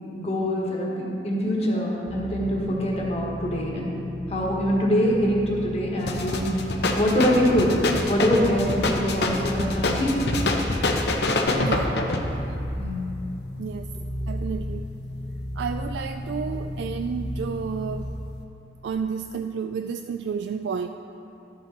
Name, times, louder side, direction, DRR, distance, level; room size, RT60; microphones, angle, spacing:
voice 1, 0.1-4.0 4.3-7.8 8.1-10.3 12.7-13.0 13.9-14.0, equal, 35° left, -3 dB, 1.5 m, -24 dB
sound 1, 2.1-18.2, equal, 20° left, 1.4 m, -34 dB
sound 2, 6.0-12.3, left 2 dB, 70° left, 0.8 m, -25 dB
voice 2, 11.6-11.9 13.6-13.9 14.3-14.9 15.6-18.0 18.8-20.9, right 6 dB, 75° right, 7 dB, 0.3 m, -31 dB
12.5 x 6.7 x 4.4 m, 2.9 s
head